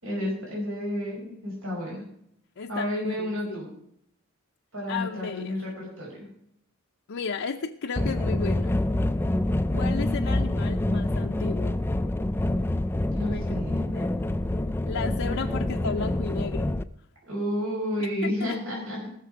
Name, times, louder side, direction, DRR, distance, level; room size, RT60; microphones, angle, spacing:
voice 1, 0.0-2.0 2.7-3.7 4.7-6.3 13.1-13.9 17.3-19.1, equal, 75° right, -4 dB, 5.1 m, -31 dB
voice 2, 2.6-3.6 4.9-5.5 7.1-8.8 9.7-11.9 13.3-13.5 13.9-14.1 14.8-16.8 18.0-18.6, left 5 dB, 70° left, 2 dB, 0.6 m, -34 dB
sound 1, 8.0-16.8, left 1 dB, 10° left, 0.3 m, -26 dB
18.0 x 6.7 x 4.9 m, 0.73 s
head